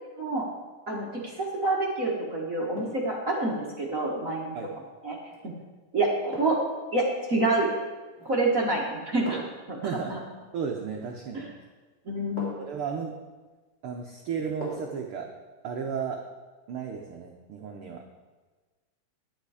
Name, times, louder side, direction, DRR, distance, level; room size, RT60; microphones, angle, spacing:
voice 1, 0.9-4.6 5.0-5.2 5.4-5.5 5.9-6.6 6.9-7.7 8.2-9.4 9.7-9.8 10.1-10.2 11.3-11.5 12.1-12.5, right 2 dB, 50° right, -3 dB, 1.0 m, -27 dB
sound 1, 1.2-1.5 2.7-3.2 5.3-5.5 6.3-6.8 8.1-8.5 9.2-9.7 11.4-11.5 12.4-12.8 14.6-15.0 15.4-15.5, right 2 dB, 20° left, 2.6 m, -40 dB
voice 2, 9.8-10.2 10.5-11.5 12.6-13.1 13.8-15.3 15.6-16.2 16.7-18.0, right 6 dB, 80° right, 2 dB, 1.2 m, -34 dB
10.5 x 10.0 x 4.9 m, 1.3 s
omnidirectional pair, 3.6 m